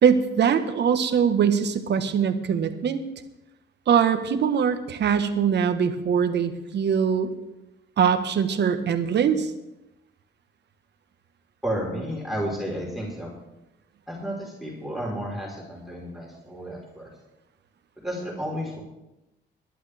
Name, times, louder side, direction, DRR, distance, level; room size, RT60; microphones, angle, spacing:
voice 1, 0.0-3.0 3.9-7.3 8.0-9.5, right 7 dB, 60° right, 8 dB, 1.4 m, -22 dB
voice 2, 11.6-13.3 14.1-17.1 18.0-18.8, equal, ahead, -4 dB, 4.4 m, -32 dB
20.5 x 11.0 x 3.5 m, 0.94 s
cardioid pair, 90°, 20 cm